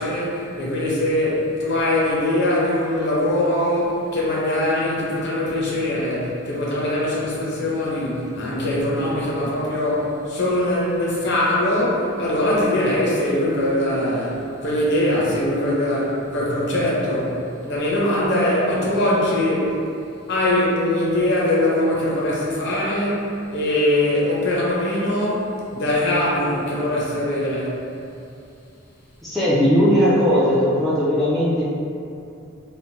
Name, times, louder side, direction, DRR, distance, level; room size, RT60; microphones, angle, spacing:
voice 1, 0.0-19.8 20.3-27.8, left 1 dB, 55° left, -6 dB, 0.6 m, -22 dB
voice 2, 29.2-31.7, equal, ahead, -10 dB, 0.3 m, -18 dB
3.1 x 2.0 x 2.7 m, 2.7 s
head